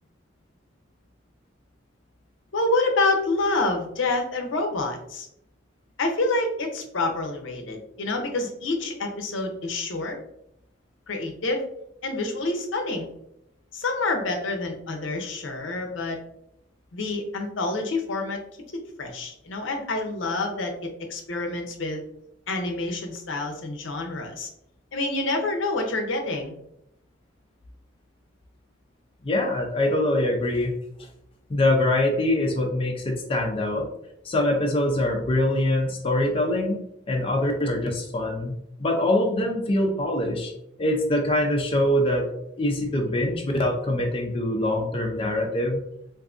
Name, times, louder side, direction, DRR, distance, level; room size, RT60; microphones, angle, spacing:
voice 1, 2.5-5.3 6.0-10.2 11.1-11.6 12.0-13.1 13.7-16.2 16.9-18.4 18.7-22.0 22.5-24.5 24.9-26.5, left 2 dB, 75° left, 3 dB, 0.6 m, -27 dB
voice 2, 29.2-30.8 31.5-33.9 34.2-36.8 37.1-40.5 40.8-42.3 42.6-45.8, left 1 dB, 30° left, 1 dB, 0.4 m, -24 dB
3.6 x 2.6 x 2.4 m, 0.77 s
head